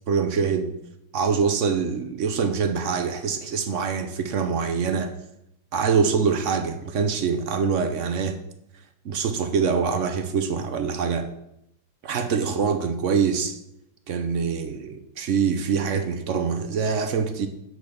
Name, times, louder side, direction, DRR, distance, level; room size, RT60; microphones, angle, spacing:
voice 1, 0.1-0.7 1.1-5.1 5.7-8.4 9.0-11.3 12.0-13.6 14.1-17.5, right 6 dB, 85° right, 8 dB, 0.6 m, -24 dB
8.7 x 6.2 x 7.0 m, 0.80 s
omnidirectional pair, 2.4 m